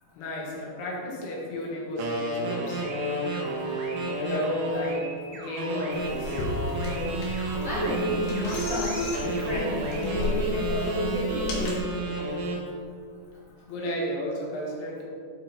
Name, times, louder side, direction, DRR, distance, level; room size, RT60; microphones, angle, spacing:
voice 1, 0.2-3.4 4.2-6.6 13.7-15.0, left 1 dB, 90° left, -2 dB, 3.6 m, -33 dB
sound 1, 2.0-5.1 5.6-8.5 9.1-12.7, right 1 dB, 65° right, 2.7 m, -31 dB
sound 2, 2.8-10.0, right 3 dB, 85° right, 3.3 m, -44 dB
sound 3, 5.9-11.8, left 2 dB, 65° left, 3.5 m, -34 dB
voice 2, 7.6-11.9, equal, 25° right, -8 dB, 1.6 m, -30 dB
11.0 x 5.3 x 4.5 m, 2.4 s
omnidirectional pair, 4.6 m